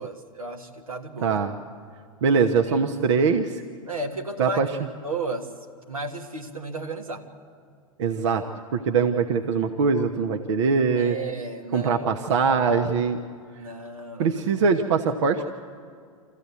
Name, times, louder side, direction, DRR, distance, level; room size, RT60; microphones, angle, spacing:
voice 1, 0.0-1.4 2.7-2.8 3.9-4.6 5.0-5.5 5.9-7.3 11.0-12.1 13.6-14.7, right 3 dB, 80° right, 3 dB, 1.8 m, -34 dB
voice 2, 1.2-1.5 2.2-3.6 4.4-4.7 8.0-8.4 8.7-11.2 11.7-13.2 14.2-15.5, right 5 dB, 60° right, 6 dB, 1.1 m, -22 dB
26.0 x 14.5 x 8.3 m, 2.2 s
figure-of-eight pair, 95°, 18 cm